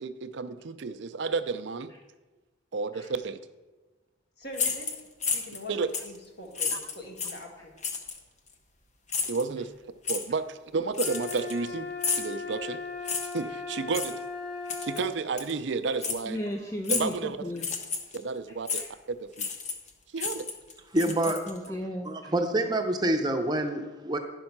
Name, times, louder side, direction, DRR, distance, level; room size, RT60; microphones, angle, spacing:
voice 1, 0.0-1.9 2.7-3.4 5.7-5.9 6.7-6.8 9.3-9.7 10.1-12.8 13.3-14.2 14.8-16.4 16.9-17.4 18.1-19.5 20.1-20.4, right 4 dB, 70° right, 11 dB, 0.5 m, -31 dB
voice 2, 4.4-4.9 5.3-7.7, left 1 dB, 55° left, 1 dB, 1.7 m, -43 dB
sound 1, 4.5-5.6 5.9-6.2 6.5-7.4 7.8-8.2 9.1-9.4 10.0-10.2 10.9-11.7 12.0-12.3 13.0-13.4 13.9-14.1 14.7-15.0 15.4-15.5 16.0-16.2 16.8-17.2 17.6-18.2 18.7-18.8 19.4-19.9 20.2-21.7, left 5 dB, 35° left, 0.9 m, -31 dB
sound 2, 11.0-15.1, left 4 dB, 75° left, 2.3 m, -37 dB
voice 3, 16.2-17.7 18.5-18.9 21.1-22.3, left 1 dB, 15° left, 2 dB, 0.5 m, -36 dB
voice 4, 20.9-21.4 22.1-24.2, right 1 dB, 20° right, 4 dB, 0.7 m, -27 dB
10.5 x 5.4 x 5.9 m, 1.2 s
head